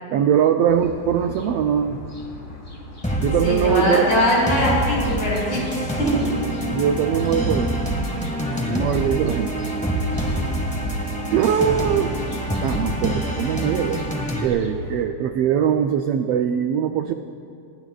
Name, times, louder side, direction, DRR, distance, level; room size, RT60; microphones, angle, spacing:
voice 1, 0.1-2.0 3.2-4.1 6.7-7.8 8.7-9.5 11.3-12.1 12.6-14.0 14.4-17.1, right 8 dB, 80° right, 6 dB, 1.3 m, -21 dB
sound 1, 0.7-15.1, equal, 25° left, 1.1 m, -38 dB
sound 2, 3.0-14.5, right 1 dB, 5° left, 0.8 m, -26 dB
voice 2, 3.4-6.3 8.5-8.8, equal, 75° left, -4 dB, 7.0 m, -22 dB
29.0 x 20.0 x 2.4 m, 2.5 s
omnidirectional pair, 3.4 m